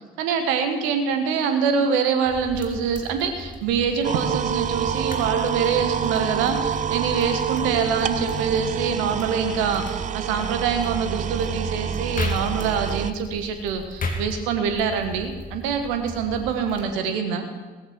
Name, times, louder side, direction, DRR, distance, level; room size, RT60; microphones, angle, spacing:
voice 1, 0.2-17.5, right 6 dB, 65° right, 7 dB, 1.5 m, -25 dB
sound 1, 2.3-16.9, left 2 dB, 40° left, 2.4 m, -36 dB
sound 2, 4.0-13.1, right 8 dB, 35° right, 0.5 m, -27 dB
17.0 x 15.0 x 4.6 m, 1.3 s
figure-of-eight pair, 40°, 21 cm